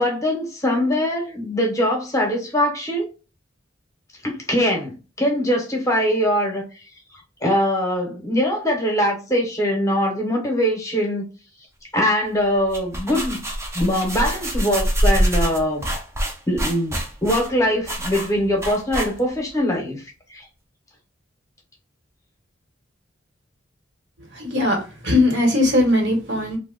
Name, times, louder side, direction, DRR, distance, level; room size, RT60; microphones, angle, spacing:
voice 1, 0.0-3.1 4.2-6.6 7.4-11.2 11.9-13.4 13.7-15.9 16.5-20.0 20.3-20.4, equal, 15° left, 0.8 m, -22 dB
sound 1, 12.5-19.5, equal, 15° right, 0.5 m, -25 dB
voice 2, 24.3-26.6, left 1 dB, 65° right, 1.1 m, -19 dB
2.8 x 2.1 x 3.7 m
head